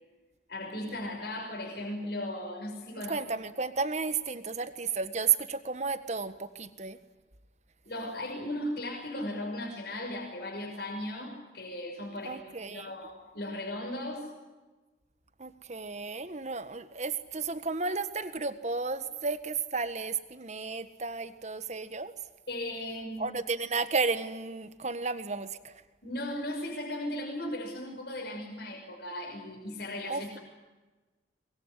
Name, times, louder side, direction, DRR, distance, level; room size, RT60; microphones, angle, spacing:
voice 1, 0.5-3.2 7.9-14.3 22.5-23.4 26.0-30.4, left 1 dB, 60° left, 1 dB, 6.0 m, -37 dB
voice 2, 2.9-7.0 12.2-12.9 15.4-22.1 23.2-25.7 30.1-30.4, right 4 dB, 40° right, 11 dB, 1.6 m, -33 dB
24.0 x 22.0 x 9.8 m, 1.2 s
head